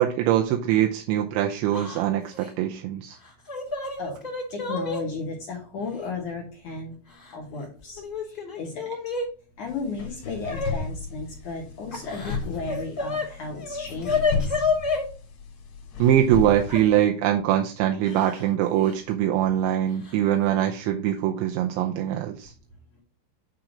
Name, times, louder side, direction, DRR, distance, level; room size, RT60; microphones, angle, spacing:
voice 1, 0.0-3.2 16.0-22.5, right 11 dB, 80° right, 3 dB, 2.7 m, -23 dB
Yell / Crying sobbing, 1.7-2.0 2.3-2.5 3.2-5.0 6.0-6.1 7.1-7.6 8.0-9.3 10.4-10.7 11.9-13.2 13.6-15.0 16.7-16.8 18.0-18.5 18.7-18.9 20.0-20.1 20.6-20.9, left 4 dB, 20° left, 1.5 m, -29 dB
voice 2, 4.5-6.9 7.3-8.0 8.6-8.9 9.6-14.3, left 4 dB, 80° left, -1 dB, 1.7 m, -34 dB
sound 1, 9.7-17.0, left 5 dB, 60° left, 3.0 m, -34 dB
9.1 x 3.8 x 5.0 m, 0.37 s
omnidirectional pair, 5.8 m